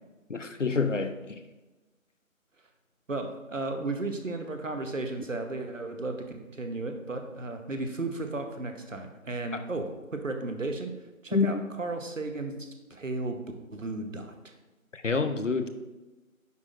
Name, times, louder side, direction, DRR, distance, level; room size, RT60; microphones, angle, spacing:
voice 1, 0.3-1.1 11.3-11.5 15.0-15.7, left 4 dB, 60° left, 9 dB, 0.7 m, -26 dB
voice 2, 3.1-10.9 11.2-13.4 13.7-14.5, right 2 dB, 65° right, 6 dB, 1.1 m, -34 dB
9.5 x 6.0 x 2.5 m, 1.1 s
figure-of-eight pair, 170°, 42 cm